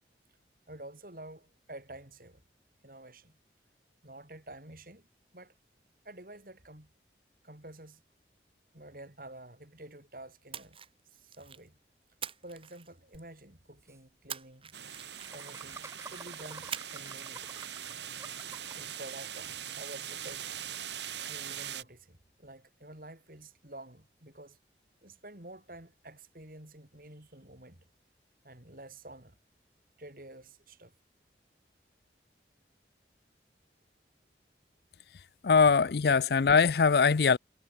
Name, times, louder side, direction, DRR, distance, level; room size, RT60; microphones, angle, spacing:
voice 1, 0.7-2.4 2.8-3.4 4.0-5.1 5.3-5.5 6.0-6.9 7.4-8.0 8.7-10.8 11.1-11.8 12.4-14.7 15.3-17.6 18.7-20.5 21.3-24.6 25.0-27.8 28.4-29.4 30.0-30.9, right 1 dB, 50° right, 4.3 m, -49 dB
Splash splatter, 10.5-11.7 12.2-13.4 14.3-15.6 16.7-17.2 17.5-17.7, right 8 dB, 30° right, 6.1 m, -43 dB
Laughter, 13.1-13.2 13.5-13.6 13.8-14.0 15.2-18.9, right 3 dB, 15° right, 2.6 m, -49 dB
sound 1, 14.7-21.8, right 9 dB, 85° right, 5.1 m, -41 dB
voice 2, 35.4-37.4, left 5 dB, 65° left, 0.5 m, -22 dB
head